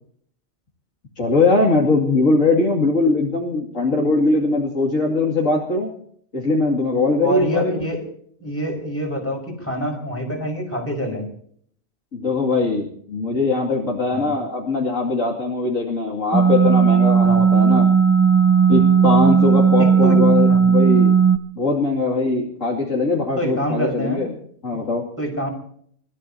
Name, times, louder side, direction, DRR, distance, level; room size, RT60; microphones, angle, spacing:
voice 1, 1.2-5.9 6.3-7.9 12.1-17.9 18.7-21.1 21.6-24.3 24.6-25.0, left 3 dB, 75° left, -3 dB, 2.9 m, -21 dB
voice 2, 7.2-8.1 8.4-11.3 14.1-14.3 17.2-17.4 19.8-20.6 23.4-24.3 25.2-25.5, equal, 10° left, 2 dB, 5.4 m, -26 dB
sound 1, 16.3-21.4, right 6 dB, 10° right, 0.5 m, -15 dB
29.5 x 15.0 x 2.8 m, 0.62 s
omnidirectional pair, 1.4 m